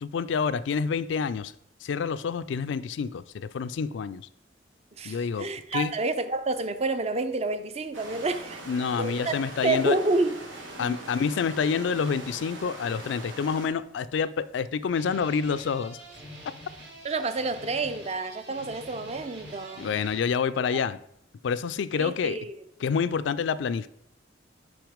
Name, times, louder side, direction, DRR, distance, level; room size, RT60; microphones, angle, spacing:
voice 1, 0.0-1.5 1.8-4.3 5.0-5.9 8.7-10.0 10.8-16.0 19.8-21.0 21.4-22.4 22.8-23.9, left 6 dB, 70° left, 0.3 m, -28 dB
voice 2, 5.0-8.6 9.0-9.3 9.6-10.4 10.8-11.0 17.0-19.9 21.9-22.5, right 3 dB, 35° right, 0.5 m, -29 dB
sound 1, 7.9-13.7, right 2 dB, 90° right, 1.6 m, -42 dB
sound 2, 14.0-14.6 14.8-20.2, equal, 60° right, 2.8 m, -46 dB
6.1 x 5.4 x 5.0 m
head